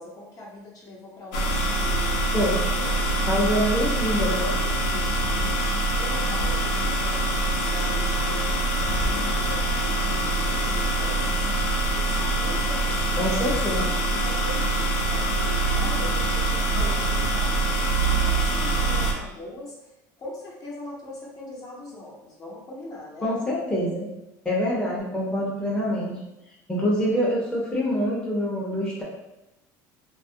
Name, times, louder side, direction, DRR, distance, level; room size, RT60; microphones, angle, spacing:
voice 1, 0.0-3.4 4.4-13.3 13.8-23.3, left 1 dB, 40° left, -4 dB, 0.8 m, -41 dB
sound 1, 1.3-19.1, right 2 dB, 80° left, 0.5 m, -24 dB
voice 2, 3.3-4.5 13.2-13.9 16.8-17.0 23.2-24.1 24.4-26.2 26.7-29.0, equal, 10° left, -6 dB, 0.7 m, -25 dB
2.3 x 2.0 x 2.7 m, 0.92 s
supercardioid pair, 100°, 9 cm